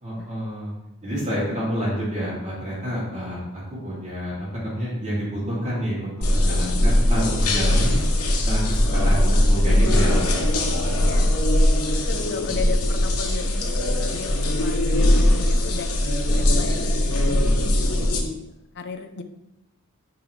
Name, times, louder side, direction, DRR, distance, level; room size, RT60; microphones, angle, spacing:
voice 1, 0.0-0.7 1.0-3.4 3.7-7.9 8.4-10.9, equal, 35° right, -7 dB, 2.8 m, -28 dB
sound 1, 6.2-18.2, left 1 dB, 85° left, 1.2 m, -20 dB
voice 2, 11.0-11.4 11.9-15.9 16.3-19.2, left 4 dB, 55° left, 8 dB, 0.6 m, -36 dB
9.7 x 4.8 x 3.3 m, 0.90 s
head